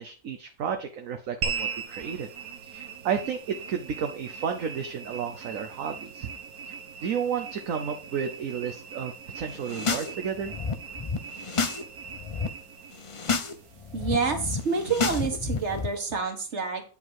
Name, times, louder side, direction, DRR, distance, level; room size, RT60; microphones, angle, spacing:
voice 1, 0.0-2.3 2.6-6.3 6.6-6.7 7.0-10.5, right 7 dB, 65° right, 5 dB, 1.3 m, -32 dB
sound 1, 1.4-16.0, right 5 dB, 85° right, 1.8 m, -40 dB
sound 2, 9.5-10.1 10.4-11.8 12.1-12.5 12.9-13.5 13.8-15.9, left 5 dB, 35° left, 0.5 m, -30 dB
voice 2, 13.9-16.8, right 5 dB, 50° right, 4 dB, 2.0 m, -28 dB
9.3 x 5.3 x 4.8 m, 0.38 s
omnidirectional pair, 1.5 m